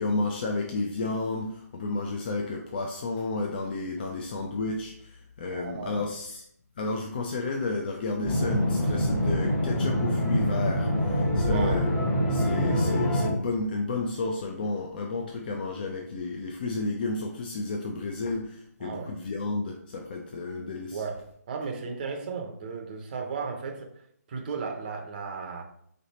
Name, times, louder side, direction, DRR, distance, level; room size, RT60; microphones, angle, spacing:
voice 1, 0.0-6.4 6.8-11.9 12.3-21.0, left 3 dB, 35° left, 2 dB, 0.4 m, -31 dB
voice 2, 5.4-6.2 11.4-11.9 18.8-19.2 20.9-21.2 21.5-24.0 24.3-25.6, right 5 dB, 30° right, 2 dB, 0.6 m, -35 dB
sound 1, 8.2-13.3, equal, 15° left, 0.9 m, -25 dB
3.9 x 3.3 x 4.1 m, 0.67 s
hypercardioid pair, 160°, 9 cm